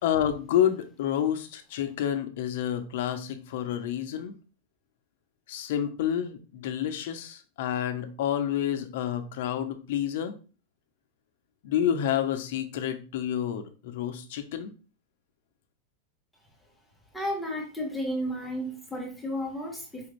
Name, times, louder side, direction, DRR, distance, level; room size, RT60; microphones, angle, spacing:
voice 1, 0.0-4.3 5.5-10.3 11.6-14.7, left 10 dB, 60° left, 7 dB, 0.7 m, -29 dB
voice 2, 17.1-20.1, equal, ahead, -2 dB, 0.9 m, -33 dB
4.9 x 2.5 x 3.1 m, 0.34 s
supercardioid pair, 165°, 0 cm